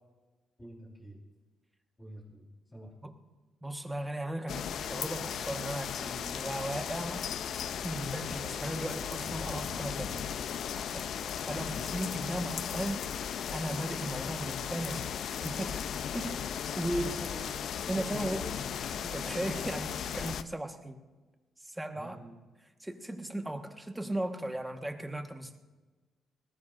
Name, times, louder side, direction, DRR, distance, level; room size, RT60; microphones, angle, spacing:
voice 1, 0.6-1.2 2.0-2.4 2.7-3.0 11.4-11.9 16.8-17.6 17.9-18.7 21.9-22.4, right 1 dB, 15° left, -2 dB, 4.3 m, -46 dB
voice 2, 3.6-7.3 7.8-10.2 10.8-13.1 13.5-15.8 16.1-16.4 16.8-17.0 17.9-18.5 19.0-21.0 21.6-22.2 22.8-25.6, right 1 dB, 10° right, 5 dB, 1.4 m, -37 dB
sound 1, 4.5-20.4, left 8 dB, 65° left, 0.5 m, -36 dB
sound 2, 9.0-12.5, right 5 dB, 65° right, 1.2 m, -54 dB
20.0 x 18.5 x 2.6 m, 1.2 s
cardioid pair, 90°, 0 cm